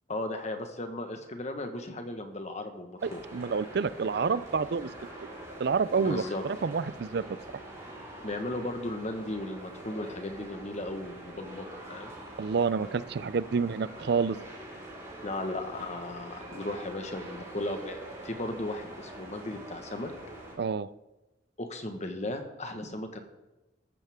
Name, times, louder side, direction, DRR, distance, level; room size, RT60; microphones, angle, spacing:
voice 1, 0.1-3.2 6.0-6.4 8.2-12.2 15.2-18.0 18.2-20.1 21.6-23.2, left 1 dB, 40° left, 6 dB, 1.4 m, -36 dB
sound 1, 3.0-20.5, right 1 dB, 15° right, 4.7 m, -45 dB
voice 2, 3.0-4.9 5.6-7.3 12.4-14.4 20.6-20.9, right 5 dB, 60° right, 17 dB, 0.4 m, -28 dB
14.0 x 13.5 x 3.7 m, 1.0 s
head